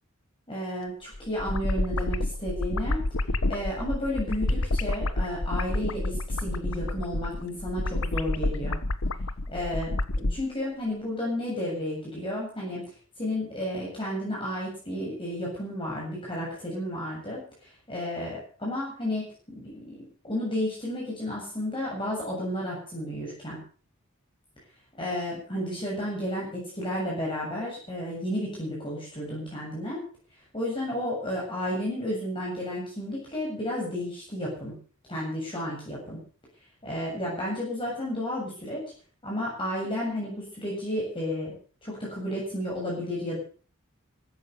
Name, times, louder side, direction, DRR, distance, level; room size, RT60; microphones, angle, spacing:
voice 1, 0.5-3.0 3.5-8.8 9.5-12.8 13.2-19.2 19.5-20.0 20.2-23.6 25.0-30.0 30.5-34.7 35.1-36.2 36.8-38.8 39.2-41.5 41.8-43.4, left 1 dB, 25° left, -4 dB, 7.5 m, -32 dB
sound 1, 1.1-10.4, left 2 dB, 80° left, 1.3 m, -29 dB
15.5 x 13.0 x 6.9 m, 0.42 s
head